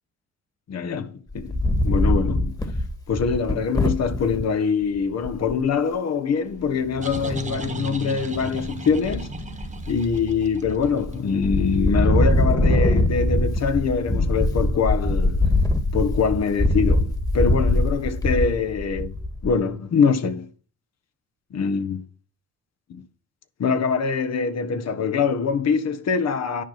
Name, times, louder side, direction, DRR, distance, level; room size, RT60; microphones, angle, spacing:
voice 1, 0.7-1.6 1.8-2.5 3.1-9.3 9.9-15.5 15.9-19.1 19.4-20.5 21.5-22.0 22.9-23.0 23.6-26.6, left 5 dB, 60° left, 1.4 m, -24 dB
Wind, 1.3-4.4 5.0-5.1 5.2-5.6 7.1-7.7 8.2-8.7 9.0-10.2 10.6-11.1 11.4-19.6, left 1 dB, 10° left, 1.7 m, -22 dB
sound 1, 6.5-12.0, right 3 dB, 25° right, 1.5 m, -35 dB
10.5 x 5.5 x 5.9 m
cardioid pair, 90°, 30 cm